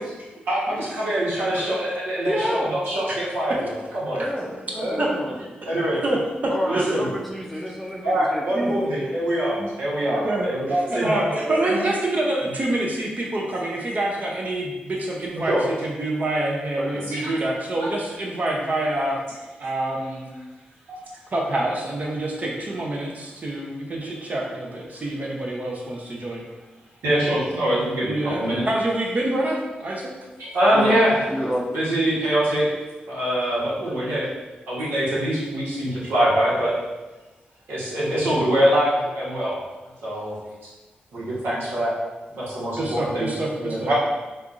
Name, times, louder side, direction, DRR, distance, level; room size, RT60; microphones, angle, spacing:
voice 1, 0.5-4.2 4.8-5.0 5.6-6.0 6.7-7.1 8.0-11.8 15.5-15.6 17.1-17.2 20.9-21.0 27.0-28.6 30.4-31.2 31.7-32.6 33.1-34.2 34.7-36.8 37.7-39.6 40.0-40.3 41.1-41.9 42.3-43.3 43.6-43.9, right 1 dB, 85° right, -8 dB, 1.3 m, -23 dB
voice 2, 2.3-2.7 4.1-5.3 6.5-8.9 10.1-10.3 16.8-17.1 30.7-31.0 31.3-31.6, equal, ahead, -2 dB, 0.6 m, -29 dB
voice 3, 5.4-5.7 6.0-7.0 8.5-8.9 9.6-9.7 10.2-19.2 19.6-20.3 21.3-26.4 28.0-30.1 42.8-43.9, right 1 dB, 45° right, -1 dB, 0.7 m, -27 dB
4.4 x 2.5 x 2.5 m, 1.1 s
supercardioid pair, 45°, 4 cm